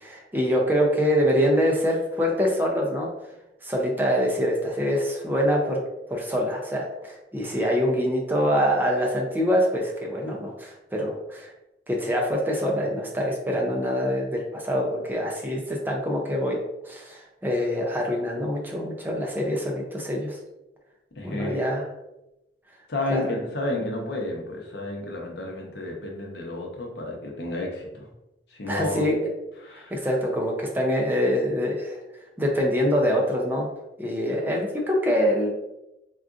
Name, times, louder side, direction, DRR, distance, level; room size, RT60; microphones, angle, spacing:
voice 1, 0.0-3.1 3.6-5.8 6.1-11.5 11.9-16.6 16.8-20.4 21.2-21.9 23.1-23.3 28.7-29.3 29.9-32.0 32.4-33.7 34.0-35.5, equal, 10° right, -1 dB, 0.4 m, -25 dB
voice 2, 21.2-21.6 22.9-28.1 28.5-29.0 29.6-29.9, left 2 dB, 70° left, 0 dB, 0.7 m, -31 dB
3.7 x 2.4 x 2.4 m, 0.93 s
head